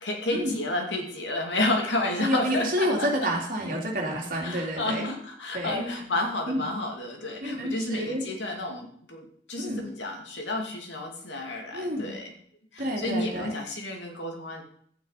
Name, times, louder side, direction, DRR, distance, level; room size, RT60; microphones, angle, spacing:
voice 1, 0.0-3.1 4.4-12.3 12.7-14.6, left 2 dB, 70° left, 2 dB, 2.5 m, -31 dB
voice 2, 2.2-5.1 5.5-6.1 6.5-6.7 7.4-8.2 9.6-9.8 11.7-12.1 12.8-13.6, equal, 50° right, -1 dB, 3.1 m, -29 dB
12.0 x 9.1 x 5.1 m, 0.63 s
head